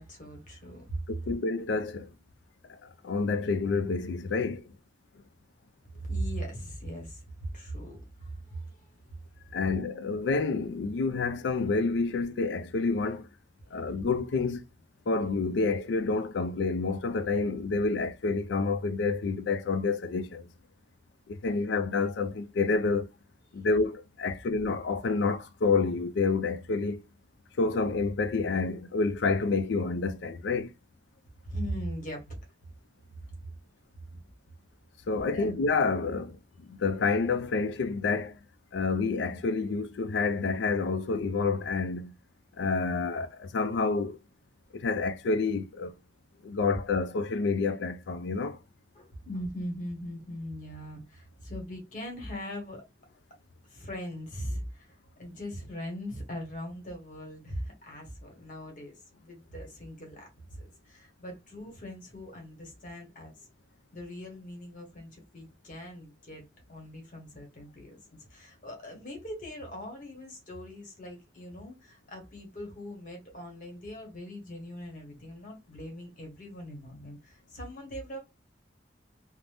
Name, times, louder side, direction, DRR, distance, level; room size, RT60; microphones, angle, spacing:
voice 1, 0.0-1.0 6.0-8.9 23.5-23.6 31.4-32.3 34.1-34.2 35.3-35.5 48.9-52.8 53.7-63.5 63.9-66.4 66.7-78.2, equal, 45° left, 1.1 m, -40 dB
voice 2, 1.1-2.1 2.7-4.7 9.5-13.3 13.7-14.6 15.1-20.5 21.3-23.1 23.5-27.0 27.6-30.7 35.1-38.4 38.7-42.1 42.6-44.2 44.7-45.9 46.4-48.6, left 4 dB, 75° left, 0.4 m, -28 dB
2.5 x 2.1 x 3.3 m
head